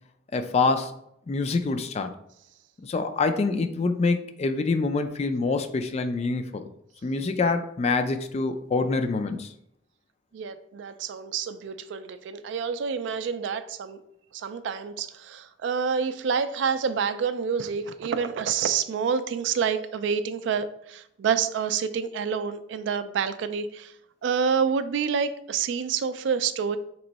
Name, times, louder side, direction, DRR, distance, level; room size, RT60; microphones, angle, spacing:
voice 1, 0.3-0.9 1.3-2.1 2.8-6.6 7.0-9.5, left 3 dB, 35° left, 7 dB, 0.3 m, -26 dB
voice 2, 10.3-14.0 14.3-23.9 24.2-26.8, right 6 dB, 70° right, 11 dB, 0.3 m, -28 dB
3.4 x 3.0 x 4.0 m, 0.75 s
head